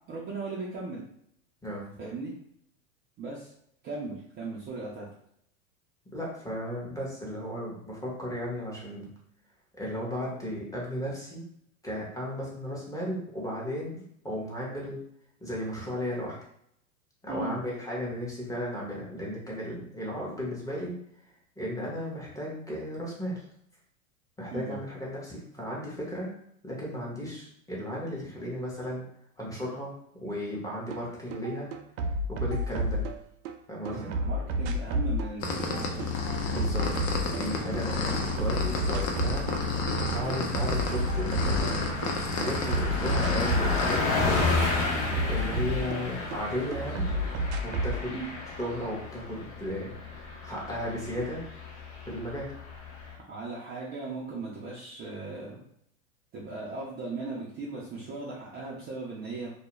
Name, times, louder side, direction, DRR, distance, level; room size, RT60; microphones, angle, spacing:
voice 1, 0.1-1.0 2.0-2.3 3.2-3.5 3.8-5.1 17.3-17.6 24.5-24.8 33.9-36.0 37.6-37.8 48.1-48.3 53.2-55.6 56.3-59.5, right 3 dB, 25° right, -5 dB, 0.5 m, -37 dB
voice 2, 6.1-9.0 9.8-11.4 11.8-15.0 15.4-16.4 17.2-20.9 21.6-23.4 24.4-26.3 26.6-29.1 29.4-29.9 30.2-31.7 32.3-33.0 33.7-34.1 36.5-39.5 40.1-41.8 42.3-44.5 45.3-47.1 47.6-48.2 48.6-49.9 50.4-51.4 52.1-52.5, equal, 10° left, -5 dB, 0.8 m, -35 dB
sound 1, 30.9-31.0 31.3-33.5 33.9-37.8 38.1-39.6 39.9-42.1 42.4-46.4 46.7-48.0, equal, 80° right, 0.5 m, -31 dB
sound 2, 35.4-44.0, left 2 dB, 75° left, 0.7 m, -31 dB
Car passing by, 38.0-38.1 38.5-38.6 38.9-53.1, left 3 dB, 45° left, 0.8 m, -33 dB
2.3 x 2.1 x 2.9 m, 0.70 s
hypercardioid pair, 115°, 40 cm